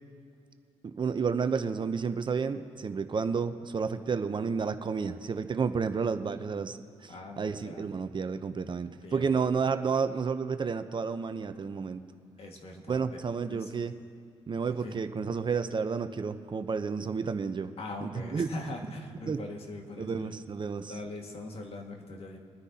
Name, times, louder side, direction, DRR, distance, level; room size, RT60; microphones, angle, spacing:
voice 1, 0.8-12.0 12.9-14.0 14.5-17.7 18.0-18.5 19.3-19.4 20.0-20.9, right 5 dB, 40° right, 10 dB, 0.7 m, -31 dB
voice 2, 7.1-7.9 9.0-9.3 12.4-13.2 13.5-13.8 14.7-15.0 17.8-20.4 20.9-22.4, left 2 dB, 55° left, 2 dB, 1.9 m, -41 dB
28.5 x 9.8 x 2.9 m, 2.4 s
supercardioid pair, 60°, 12 cm